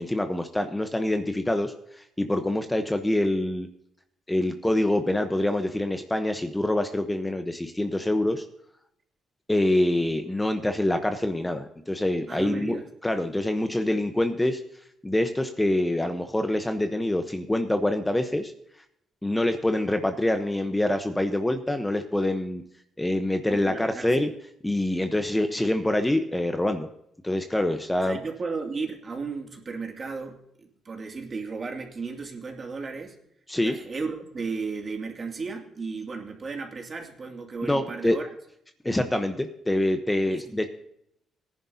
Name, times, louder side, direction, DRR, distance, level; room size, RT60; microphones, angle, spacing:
voice 1, 0.0-3.7 4.3-8.4 9.5-12.8 13.0-14.6 15.0-18.5 19.2-22.6 23.0-24.3 24.6-26.9 27.2-28.2 33.5-33.7 37.6-38.2 38.8-40.7, left 1 dB, 10° left, 7 dB, 0.9 m, -25 dB
voice 2, 12.3-12.8 23.5-24.1 28.0-33.2 33.6-38.3 40.3-40.5, right 4 dB, 40° right, 2 dB, 2.4 m, -34 dB
18.0 x 10.5 x 2.8 m, 0.74 s
cardioid pair, 90°, 0 cm